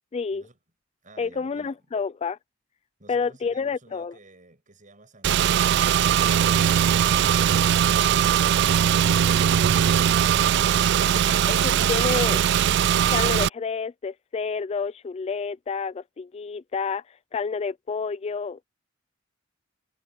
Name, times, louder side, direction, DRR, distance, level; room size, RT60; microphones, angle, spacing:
voice 1, 0.1-0.4 1.2-2.4 3.1-4.2 11.2-12.4 13.1-18.6, left 5 dB, 30° left, 0.3 m, -29 dB
voice 2, 1.0-1.8 3.0-9.5, right 2 dB, 40° right, 7.1 m, -52 dB
Car / Engine, 5.2-13.5, right 9 dB, 60° right, 0.3 m, -20 dB
head